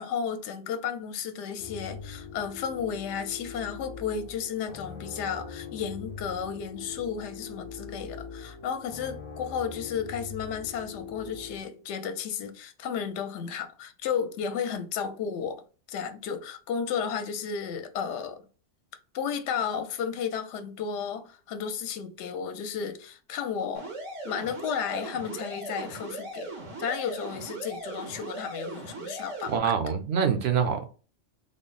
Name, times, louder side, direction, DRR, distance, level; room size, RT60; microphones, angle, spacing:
voice 1, 0.0-18.4 19.1-23.9 24.2-26.5 26.8-29.8, left 7 dB, 70° left, 0.9 m, -33 dB
sound 1, 1.6-11.6, left 5 dB, 35° left, 0.5 m, -42 dB
sound 2, 23.7-29.6, right 2 dB, 90° right, 1.6 m, -39 dB
voice 2, 29.5-30.9, right 7 dB, 65° right, 0.8 m, -25 dB
3.6 x 2.0 x 3.8 m
omnidirectional pair, 1.3 m